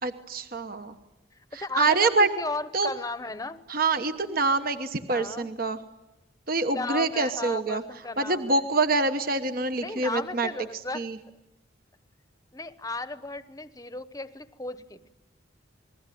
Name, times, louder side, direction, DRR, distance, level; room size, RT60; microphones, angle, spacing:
voice 1, 0.0-0.9 1.5-2.3 2.7-2.9 3.7-5.8 6.5-7.8 8.2-10.5 10.9-11.2, right 3 dB, 45° right, 8 dB, 1.2 m, -25 dB
voice 2, 1.5-3.6 5.1-5.5 6.7-8.6 9.8-11.0 12.5-15.1, left 3 dB, 20° left, 12 dB, 1.0 m, -35 dB
29.0 x 21.0 x 9.3 m, 1.0 s
head